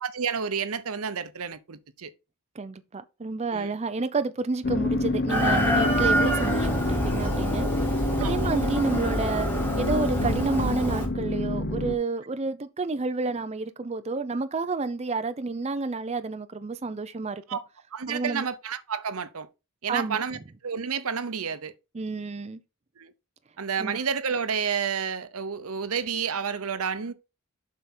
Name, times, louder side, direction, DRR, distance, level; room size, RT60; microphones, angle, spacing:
voice 1, 0.0-2.1 3.5-3.7 8.2-8.6 17.5-17.6 17.9-19.5 19.8-20.4 20.6-21.7 23.0-23.1 23.6-27.1, right 6 dB, 85° right, 0.8 m, -30 dB
voice 2, 2.5-17.6 18.1-18.5 19.9-20.2 21.9-22.6 23.8-24.0, right 3 dB, 30° right, 0.5 m, -30 dB
sound 1, 4.6-12.0, left 2 dB, 50° left, 0.8 m, -28 dB
Chicken rooster, 5.3-11.1, right 1 dB, 10° left, 2.6 m, -27 dB
7.6 x 4.8 x 4.3 m
head